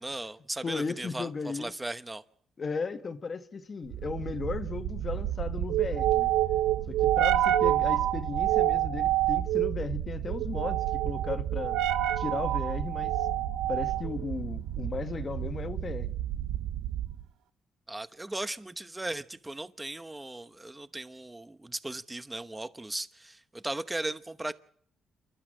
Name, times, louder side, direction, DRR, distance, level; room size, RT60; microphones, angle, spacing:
voice 1, 0.0-2.2 17.9-24.5, right 2 dB, 15° right, 0.9 m, -37 dB
voice 2, 0.6-1.7 2.6-6.3 6.9-11.8 12.2-13.2 13.7-16.1, left 4 dB, 40° left, 1.4 m, -36 dB
sound 1, 3.9-17.2, right 12 dB, 90° right, 0.8 m, -28 dB
29.0 x 12.0 x 7.7 m
cardioid pair, 90°, 0 cm